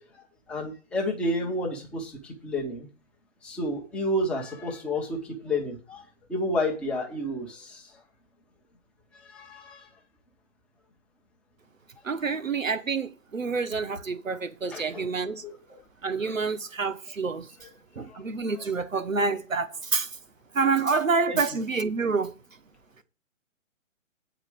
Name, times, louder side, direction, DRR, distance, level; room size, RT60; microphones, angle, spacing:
voice 1, 0.5-2.9 3.4-6.0 6.3-7.9 9.1-9.9 12.1-12.2 14.7-15.1 15.4-15.8 18.1-18.2 21.3-21.4, left 1 dB, 5° left, 0.8 m, -31 dB
voice 2, 12.0-15.4 16.0-17.5 17.9-20.2 20.5-22.3, right 4 dB, 75° right, 1.2 m, -27 dB
8.7 x 4.9 x 6.9 m
figure-of-eight pair, 140°, 39 cm